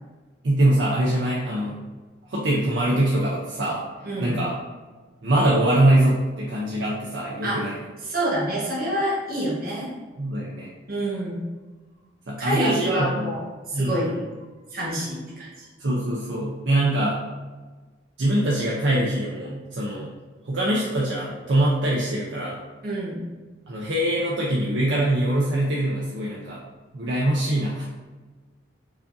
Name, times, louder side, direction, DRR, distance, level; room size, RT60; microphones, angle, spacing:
voice 1, 0.4-1.8 2.3-3.8 4.2-4.5 5.2-7.8 10.2-10.7 12.3-13.3 13.7-14.2 15.8-17.2 18.2-20.1 20.4-22.6 23.7-26.6 26.9-27.9, right 1 dB, 70° right, -5 dB, 0.6 m, -23 dB
voice 2, 4.0-4.3 7.4-7.6 8.0-9.9 10.9-11.4 12.4-14.1 14.7-15.7 22.8-23.2, right 1 dB, 50° right, -5 dB, 1.2 m, -27 dB
4.8 x 2.5 x 2.6 m, 1.3 s
head